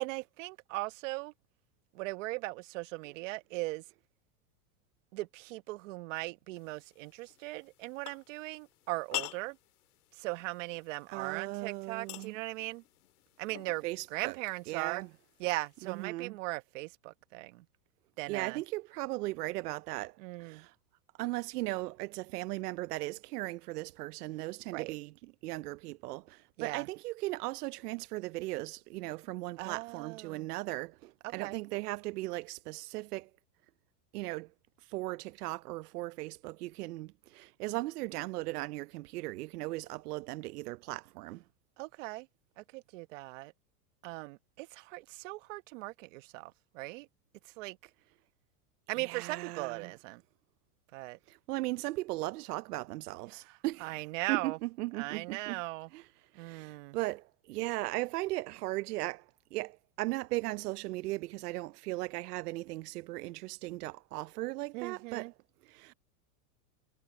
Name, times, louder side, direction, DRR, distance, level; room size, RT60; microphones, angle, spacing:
voice 1, 0.0-1.3 1.9-3.8 5.1-9.6 10.1-12.8 13.4-13.8 14.1-15.0 15.4-17.7 18.2-18.6 20.2-20.7 24.7-24.9 26.6-26.9 29.6-30.5 31.2-31.6 41.8-42.3 42.6-43.5 44.0-47.1 47.4-47.8 48.9-50.2 50.9-51.2 53.3-54.6 54.9-55.9 56.3-57.0 64.7-65.3, right 22 dB, 55° right, 1.1 m, -39 dB
sound 1, 6.5-16.1, left 17 dB, 75° left, 2.0 m, -47 dB
voice 2, 11.1-12.4 13.8-14.3 14.7-15.1 15.8-16.3 18.3-20.7 21.2-25.1 25.4-33.3 34.1-34.5 34.8-41.4 49.0-49.8 51.3-54.0 54.3-55.6 55.9-56.0 56.3-65.3 65.6-65.9, right 19 dB, 90° right, 0.6 m, -37 dB
supercardioid pair, 155°, 45 cm